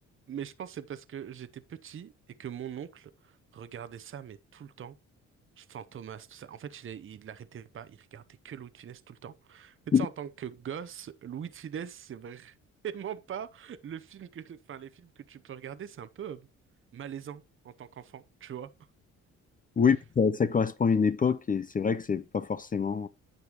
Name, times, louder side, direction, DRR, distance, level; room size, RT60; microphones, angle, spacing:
voice 1, 0.3-2.1 2.4-5.0 5.6-12.6 12.8-16.5 16.9-18.7, right 9 dB, 45° right, 0.8 m, -42 dB
voice 2, 19.8-23.1, left 6 dB, 30° left, 0.6 m, -25 dB
9.8 x 6.9 x 3.0 m
cardioid pair, 90°, 30 cm